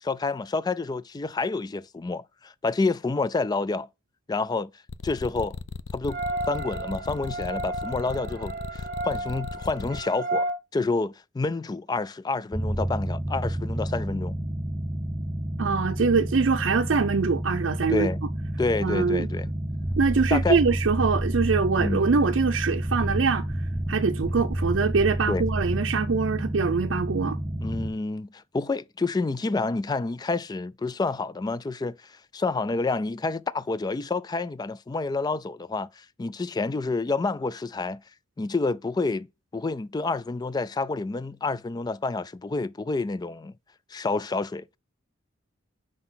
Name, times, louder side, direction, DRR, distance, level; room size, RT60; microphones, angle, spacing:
voice 1, 0.0-3.9 4.3-4.7 5.0-5.6 5.9-6.2 6.5-14.3 17.9-18.2 18.6-19.5 20.3-20.6 21.8-22.1 25.3-25.5 27.6-38.0 38.4-39.3 39.5-43.5 43.9-44.6, left 3 dB, 20° left, 0.3 m, -28 dB
sound 1, 4.9-10.0, left 5 dB, 80° left, 0.5 m, -36 dB
sound 2, 6.1-10.6, right 2 dB, 45° right, 0.9 m, -32 dB
sound 3, 12.5-27.9, right 1 dB, 10° right, 0.8 m, -29 dB
voice 2, 15.6-18.1 18.8-19.3 20.0-23.4 23.9-27.4, right 5 dB, 75° right, 0.5 m, -23 dB
5.9 x 4.8 x 5.7 m
head